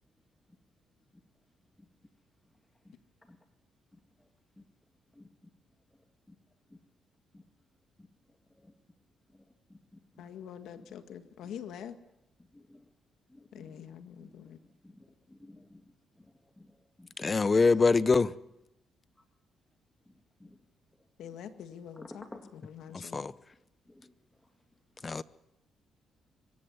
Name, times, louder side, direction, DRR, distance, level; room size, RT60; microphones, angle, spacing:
voice 1, 3.9-4.3 4.6-4.7 5.1-5.5 5.9-6.4 6.7-6.8 7.3-7.4 8.0-8.7 9.3-10.2 10.8-10.9 12.4-12.9 13.3-13.9 14.2-15.8 16.2-17.1 20.1-20.6 21.0-21.1 21.9-22.7 23.9-24.1 24.4-24.5, left 1 dB, 10° left, 2.2 m, -55 dB
voice 2, 10.2-12.0 13.5-14.6 21.2-22.3 22.5-23.3, left 9 dB, 80° left, 1.9 m, -45 dB
voice 3, 17.2-18.3 22.9-23.3 25.0-25.2, left 4 dB, 30° left, 0.8 m, -24 dB
24.0 x 14.5 x 9.6 m
cardioid pair, 90°, 0 cm